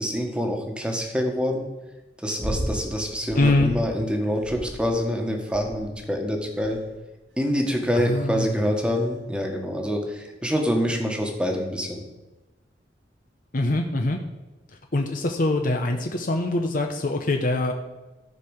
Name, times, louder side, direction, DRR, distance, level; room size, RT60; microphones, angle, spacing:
voice 1, 0.0-1.7 2.2-6.8 7.4-12.0, equal, 5° right, 2 dB, 1.5 m, -26 dB
sound 1, 2.4-2.8 3.3-3.9 4.4-5.0 5.5-6.0 6.6-7.0 7.7-8.0 9.0-9.1, right 1 dB, 80° right, 2.5 m, -34 dB
voice 2, 3.4-3.7 7.9-8.5 13.5-14.2 14.9-17.7, left 2 dB, 50° left, 3 dB, 0.9 m, -23 dB
14.0 x 4.7 x 6.5 m, 1.1 s
head